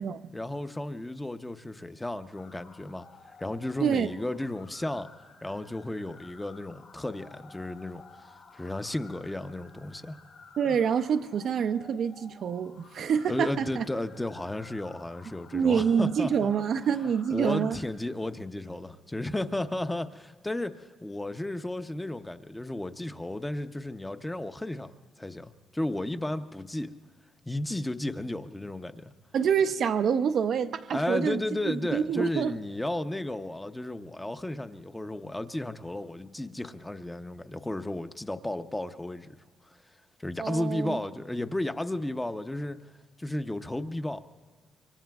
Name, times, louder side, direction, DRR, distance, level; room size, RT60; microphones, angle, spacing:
voice 1, 0.3-5.1 5.4-10.2 13.3-16.5 17.3-24.9 25.2-26.9 27.5-29.1 30.9-39.4 40.2-42.8 43.2-44.2, left 1 dB, 10° left, 0.7 m, -33 dB
sound 1, 2.3-17.9, left 4 dB, 80° left, 5.1 m, -53 dB
voice 2, 10.6-13.9 15.5-17.8 29.3-31.4 31.7-32.5 40.4-41.0, right 7 dB, 60° right, 0.5 m, -27 dB
25.5 x 24.0 x 2.3 m
cardioid pair, 90°, 0 cm